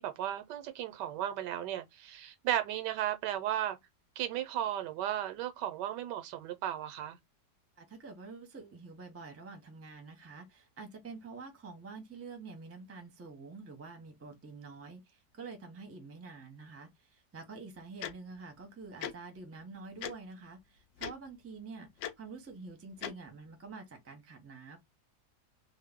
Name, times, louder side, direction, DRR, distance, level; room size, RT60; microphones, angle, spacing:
voice 1, 0.0-3.8 4.2-7.2, right 11 dB, 90° right, 1.3 m, -35 dB
voice 2, 7.8-21.9 22.2-24.8, right 4 dB, 20° right, 0.4 m, -47 dB
Tick-tock, 18.0-18.1 19.0-19.1 20.0-20.1 21.0-21.1 22.0-22.1 23.0-23.1, left 9 dB, 75° left, 0.7 m, -37 dB
2.9 x 2.0 x 3.5 m
omnidirectional pair, 1.8 m